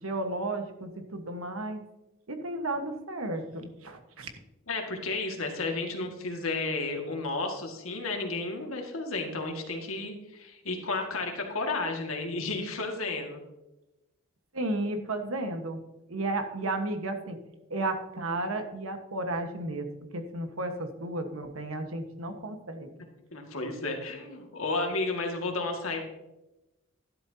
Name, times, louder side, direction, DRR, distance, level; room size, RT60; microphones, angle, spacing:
voice 1, 0.0-1.8 2.3-4.3 14.5-15.8 16.1-17.4 17.7-19.9 20.1-22.9, right 2 dB, 85° right, 6 dB, 1.4 m, -33 dB
voice 2, 4.7-13.4 23.3-26.0, left 3 dB, 80° left, 2 dB, 2.0 m, -32 dB
12.5 x 11.5 x 2.8 m, 0.97 s
head